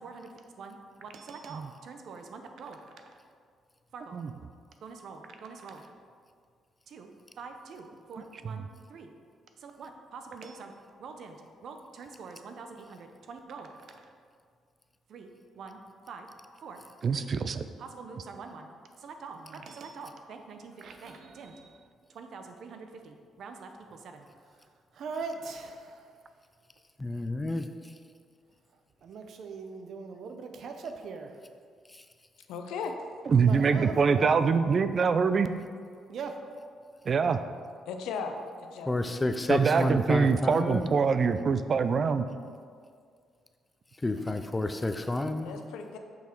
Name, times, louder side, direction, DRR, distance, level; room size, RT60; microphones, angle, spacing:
voice 1, 0.0-3.2 3.9-4.2 4.8-5.9 6.9-7.1 7.4-9.1 9.6-10.7 11.0-14.1 15.1-15.3 15.6-15.8 16.1-16.3 16.6-16.8 17.1-17.3 17.8-18.7 19.0-26.1 28.7-31.4 33.4-34.3 36.1-36.4 44.2-44.3, right 4 dB, 65° right, 5 dB, 0.8 m, -43 dB
voice 2, 17.0-17.6 33.3-35.5 37.1-37.4 39.5-42.3, right 5 dB, 50° right, 11 dB, 0.4 m, -24 dB
voice 3, 27.0-27.7 31.9-32.0 38.9-40.9 44.0-45.6, left 2 dB, 20° left, 8 dB, 0.5 m, -30 dB
voice 4, 32.5-32.9 37.9-38.3 38.6-39.0 45.4-46.0, left 6 dB, 90° left, 5 dB, 0.6 m, -36 dB
6.5 x 5.8 x 4.5 m, 2.1 s
cardioid pair, 90°, 0 cm